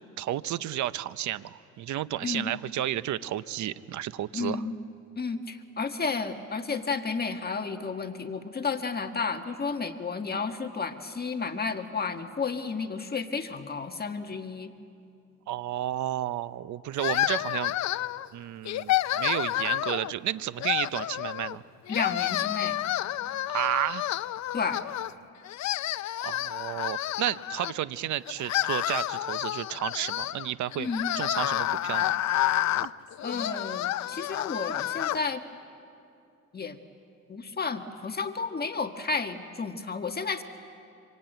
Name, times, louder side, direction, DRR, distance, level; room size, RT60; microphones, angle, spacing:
voice 1, 0.2-4.6 15.5-17.7 18.3-21.6 23.5-24.1 26.2-30.9 31.2-32.2, right 12 dB, 75° right, 15 dB, 0.7 m, -32 dB
voice 2, 2.2-2.5 4.3-4.8 5.1-14.7 21.9-22.8 24.5-24.8 30.8-31.1 33.2-35.4 36.5-36.8 37.3-40.4, left 4 dB, 30° left, 6 dB, 1.5 m, -32 dB
sound 1, 17.0-18.3 18.7-20.1 20.6-21.6 21.9-25.1 25.4-27.7 28.3-35.2, left 13 dB, 65° left, 0.6 m, -29 dB
25.5 x 25.5 x 9.1 m, 2.6 s
cardioid pair, 90°, 30 cm